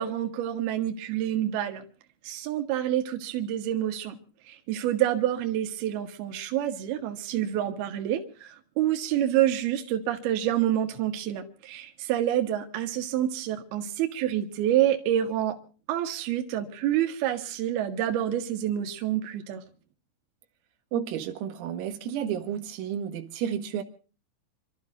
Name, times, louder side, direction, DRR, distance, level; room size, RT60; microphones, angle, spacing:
voice 1, 0.0-1.8 2.2-4.2 4.5-15.6 15.9-19.6, right 11 dB, 60° right, 3.2 m, -27 dB
voice 2, 20.9-23.8, right 9 dB, 90° right, 4.3 m, -31 dB
27.0 x 13.5 x 3.9 m
omnidirectional pair, 5.9 m